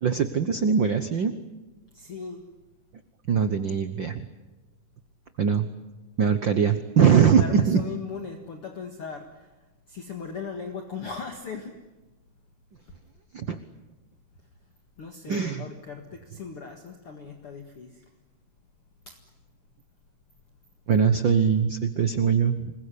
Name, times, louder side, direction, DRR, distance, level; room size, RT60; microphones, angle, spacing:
voice 1, 0.0-1.4 3.3-4.3 5.4-5.7 6.2-7.8 13.3-13.6 15.3-15.6 20.9-22.7, right 7 dB, 85° right, 10 dB, 1.0 m, -22 dB
voice 2, 1.9-2.5 7.4-11.8 12.8-12.9 14.4-14.5 15.0-18.1 19.1-19.2, left 5 dB, 45° left, 5 dB, 2.4 m, -38 dB
27.0 x 21.5 x 9.8 m, 1.1 s
omnidirectional pair, 3.9 m